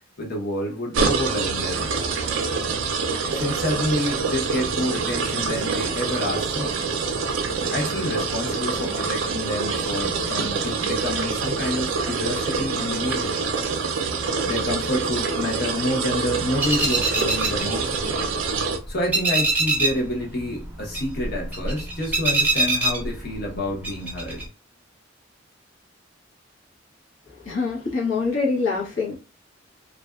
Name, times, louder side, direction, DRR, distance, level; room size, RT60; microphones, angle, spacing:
voice 1, 0.2-1.9 3.3-6.8 7.7-13.5 14.4-17.9 18.9-24.4, left 1 dB, 55° left, 0.9 m, -28 dB
sound 1, 0.9-18.8, right 4 dB, 75° right, 0.4 m, -26 dB
sound 2, 16.6-18.6 18.9-20.1 20.4-23.5 23.8-24.4, right 2 dB, 10° right, 0.6 m, -24 dB
voice 2, 27.4-29.2, left 4 dB, 80° left, 1.0 m, -25 dB
2.5 x 2.2 x 2.3 m
head